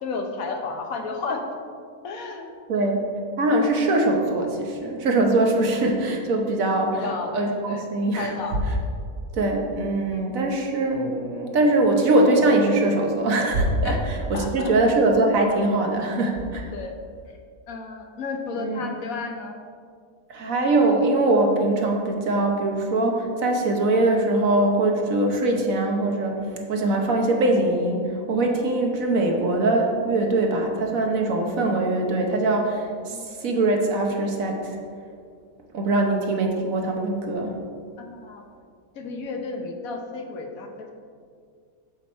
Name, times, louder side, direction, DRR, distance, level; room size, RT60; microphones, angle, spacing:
voice 1, 0.0-1.4 2.0-2.5 2.7-3.0 6.9-7.3 7.7-7.9 8.2-8.6 10.1-10.2 13.8-14.0 14.3-14.7 16.7-16.9 17.7-19.6 33.1-33.2 38.0-38.5 39.0-40.9, left 4 dB, 65° left, 3 dB, 1.2 m, -32 dB
voice 2, 3.4-7.1 7.3-8.3 9.3-13.9 14.3-16.7 18.6-18.9 20.3-26.4 26.7-34.8 35.7-37.5, right 2 dB, 65° right, 2 dB, 1.3 m, -22 dB
7.4 x 7.1 x 4.3 m, 2.2 s
omnidirectional pair, 1.6 m